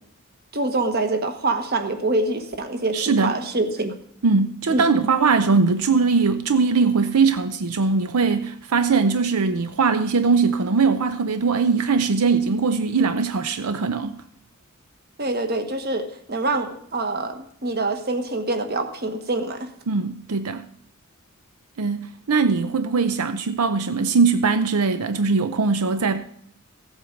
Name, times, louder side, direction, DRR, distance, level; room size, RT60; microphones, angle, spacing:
voice 1, 0.5-4.0 4.7-5.1 15.2-19.7, right 2 dB, 45° right, 1.3 m, -25 dB
voice 2, 2.9-3.4 4.2-14.2 19.9-20.6 21.8-26.2, right 4 dB, 85° right, 0.6 m, -21 dB
15.5 x 8.0 x 5.2 m
head